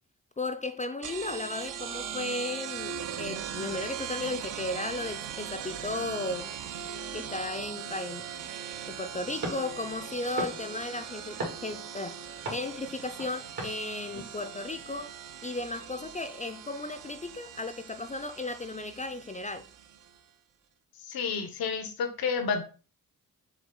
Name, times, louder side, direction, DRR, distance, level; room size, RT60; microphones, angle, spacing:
voice 1, 0.4-6.5 7.1-8.3 8.9-12.2 12.5-15.1 15.4-19.7, left 2 dB, 20° left, 0.4 m, -35 dB
sound 1, 1.0-20.2, right 8 dB, 65° right, 0.5 m, -40 dB
sound 2, 9.4-14.6, right 2 dB, 80° right, 2.1 m, -41 dB
voice 2, 21.1-22.6, left 5 dB, 85° left, 0.8 m, -30 dB
6.0 x 2.4 x 3.6 m
cardioid pair, 65°, 35 cm